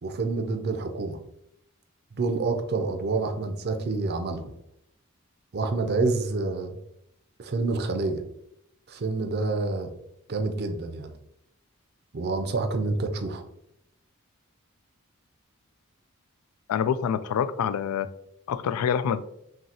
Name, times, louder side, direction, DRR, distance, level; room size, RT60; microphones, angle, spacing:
voice 1, 0.0-1.2 2.1-4.5 5.5-6.8 7.4-8.2 8.9-9.9 10.3-11.1 12.1-13.4, right 3 dB, 45° right, 6 dB, 0.5 m, -28 dB
voice 2, 16.7-18.1 18.5-19.2, left 8 dB, 85° left, 14 dB, 0.3 m, -26 dB
5.7 x 2.7 x 2.8 m, 0.78 s
head